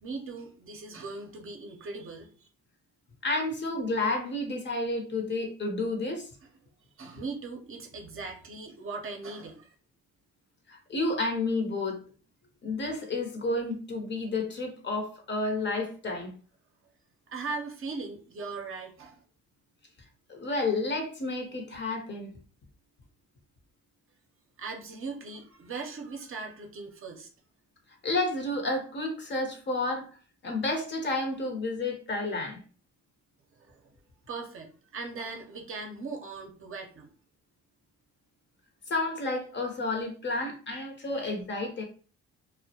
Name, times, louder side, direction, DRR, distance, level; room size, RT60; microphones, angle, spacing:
voice 1, 0.0-2.3 7.0-9.7 17.3-19.2 24.6-27.3 33.6-33.9 34.3-37.1, right 4 dB, 45° right, 0.6 m, -39 dB
voice 2, 3.2-6.3 10.7-12.0 12.6-16.3 20.3-22.3 28.0-30.1 30.4-32.6 38.9-41.8, left 2 dB, 35° left, 0.7 m, -31 dB
2.2 x 2.1 x 2.7 m
cardioid pair, 90°, 30 cm